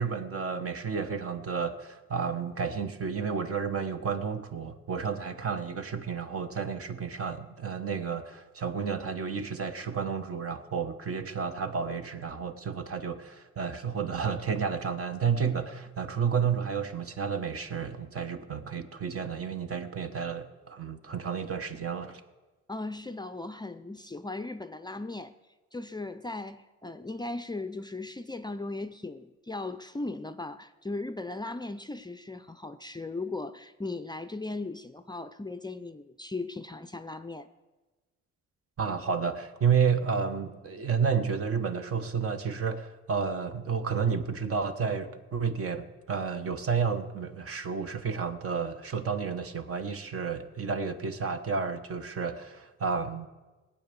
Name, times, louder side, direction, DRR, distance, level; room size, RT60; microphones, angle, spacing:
voice 1, 0.0-22.2 38.8-53.3, right 6 dB, 50° right, 8 dB, 1.3 m, -31 dB
voice 2, 22.7-25.3 25.7-37.5, left 2 dB, 15° left, 9 dB, 0.5 m, -37 dB
19.0 x 8.8 x 7.0 m, 1.2 s
cardioid pair, 90°, 30 cm